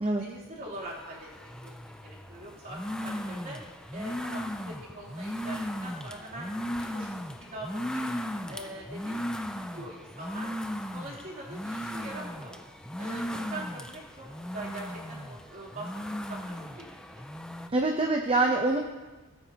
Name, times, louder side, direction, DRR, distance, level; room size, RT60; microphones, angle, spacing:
voice 1, 0.2-3.6 3.9-6.5 6.8-7.1 7.5-8.1 8.5-9.2 9.7-10.5 10.9-12.6 13.0-14.2 14.5-17.2, right 1 dB, 40° right, -6 dB, 3.1 m, -43 dB
sound 1, 0.8-17.7, equal, 5° left, 0.3 m, -37 dB
voice 2, 17.7-18.8, right 2 dB, 25° right, 2 dB, 0.7 m, -25 dB
18.0 x 8.9 x 2.9 m, 1.2 s
head